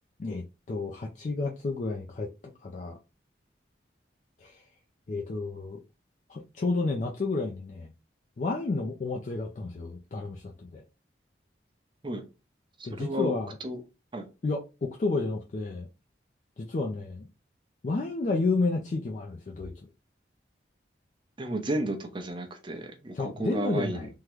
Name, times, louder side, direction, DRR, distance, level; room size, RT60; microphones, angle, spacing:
voice 1, 0.2-3.0 4.4-4.6 5.1-5.8 6.3-7.9 8.4-10.8 12.8-13.6 14.4-15.9 16.6-17.3 17.8-19.7 23.1-24.1, left 3 dB, 40° left, 2 dB, 0.4 m, -31 dB
voice 2, 12.8-13.8 14.1-14.3 21.4-24.1, right 1 dB, 25° right, 2 dB, 0.6 m, -33 dB
3.6 x 2.1 x 3.0 m, 0.30 s
head